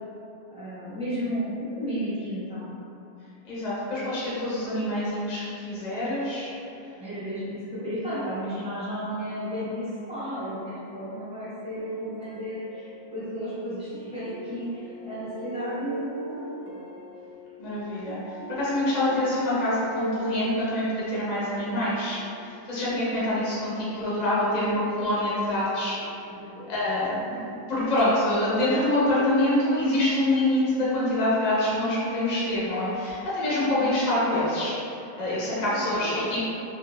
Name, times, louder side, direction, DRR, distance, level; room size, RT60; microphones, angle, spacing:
voice 1, 0.5-2.6 7.0-16.8 26.3-26.7 35.7-36.2, equal, 10° right, -13 dB, 0.3 m, -33 dB
voice 2, 3.4-6.5 17.6-26.0 26.7-34.7 35.2-36.4, left 1 dB, 75° left, -9 dB, 0.3 m, -26 dB
sound 1, 11.8-13.5 13.9-24.8 25.3-26.3, right 1 dB, 75° right, 0.9 m, -41 dB
3.5 x 2.3 x 3.0 m, 2.8 s
omnidirectional pair, 2.1 m